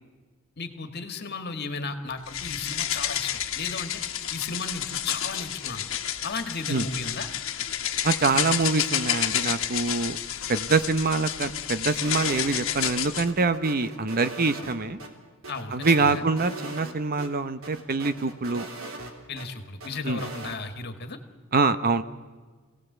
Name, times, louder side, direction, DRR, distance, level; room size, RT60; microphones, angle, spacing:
voice 1, 0.6-4.0 4.3-5.9 6.2-7.3 15.5-16.2 19.3-21.2, left 4 dB, 50° left, 7 dB, 2.0 m, -34 dB
sound 1, 2.3-13.3, left 10 dB, 70° left, 1.4 m, -30 dB
voice 2, 8.0-10.2 10.5-15.0 15.7-18.7 20.0-20.2 21.5-22.0, right 4 dB, 45° right, 12 dB, 0.9 m, -25 dB
sound 2, 12.0-12.9 13.3-15.1 15.4-16.9 17.2-17.3 17.6-19.5 19.8-20.6, right 2 dB, 75° right, 3.3 m, -39 dB
25.5 x 18.0 x 8.1 m, 1.4 s
head